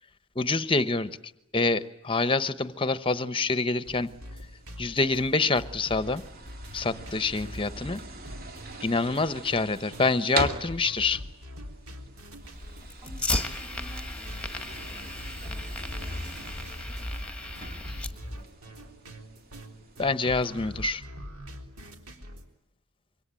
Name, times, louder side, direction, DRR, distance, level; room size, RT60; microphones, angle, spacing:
voice 1, 0.4-1.1 1.5-4.1 4.8-6.2 6.7-8.0 8.8-11.2 20.0-21.0, left 3 dB, 25° left, 14 dB, 1.0 m, -26 dB
sound 1, 3.8-20.9, right 2 dB, 40° right, 2.4 m, -41 dB
sound 2, 3.9-22.5, equal, 65° right, 3.6 m, -45 dB
voice 2, 7.7-8.2 13.0-17.3 17.6-18.9, equal, 20° right, 2 dB, 5.3 m, -54 dB
Fire, 12.4-18.4, left 2 dB, 5° left, 1.5 m, -35 dB
26.0 x 24.0 x 9.0 m, 0.85 s
head